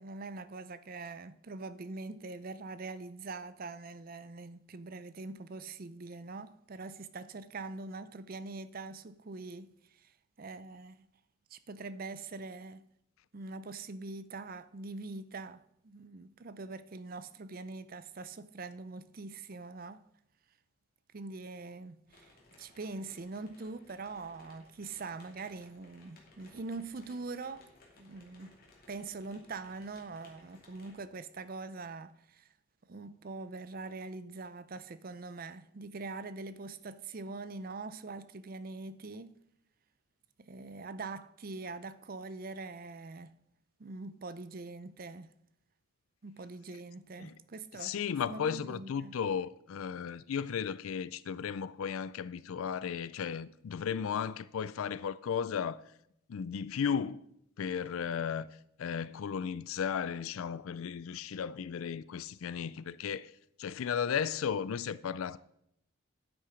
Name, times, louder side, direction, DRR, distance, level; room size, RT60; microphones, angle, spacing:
voice 1, 0.0-10.1 10.4-11.1 11.5-12.8 13.3-20.1 21.1-27.7 28.0-28.6 28.9-32.5 32.9-39.4 40.4-43.3 43.8-45.3 46.2-48.0 48.2-49.2, right 3 dB, 40° right, 0.5 m, -43 dB
sound 1, 22.1-31.0, left 2 dB, 45° left, 2.5 m, -61 dB
voice 2, 47.8-55.8 56.3-57.2 57.6-58.5 58.8-63.3 63.6-65.4, left 7 dB, 80° left, 0.4 m, -35 dB
9.7 x 8.5 x 5.0 m
head